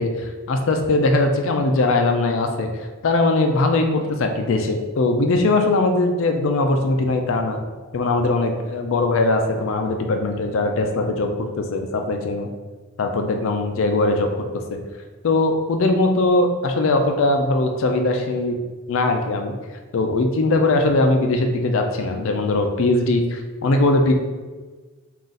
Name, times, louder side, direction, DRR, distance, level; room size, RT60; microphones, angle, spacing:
voice 1, 0.0-2.7 3.0-7.6 7.9-12.5 13.0-14.4 14.7-14.8 15.2-18.6 18.9-19.5 19.9-24.1, left 2 dB, 65° left, 5 dB, 0.4 m, -20 dB
3.7 x 2.4 x 4.0 m, 1.3 s
head